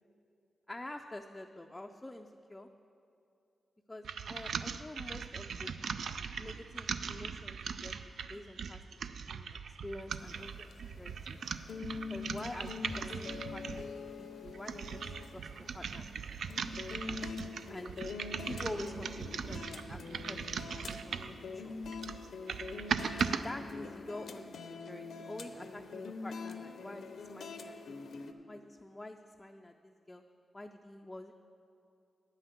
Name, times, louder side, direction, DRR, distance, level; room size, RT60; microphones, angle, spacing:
voice 1, 0.7-2.7 3.9-5.7 6.4-11.5 12.1-15.5 15.7-16.1 17.7-21.8 23.4-28.0 28.5-30.2 30.5-31.3, left 1 dB, 15° left, 3 dB, 0.4 m, -47 dB
sound 1, 4.0-13.9 14.4-21.4 21.8-23.4, right 6 dB, 80° right, 0.3 m, -39 dB
sound 2, 10.2-28.3, left 4 dB, 80° left, 0.6 m, -45 dB
10.0 x 5.7 x 8.1 m, 2.6 s
cardioid pair, 95°, 0 cm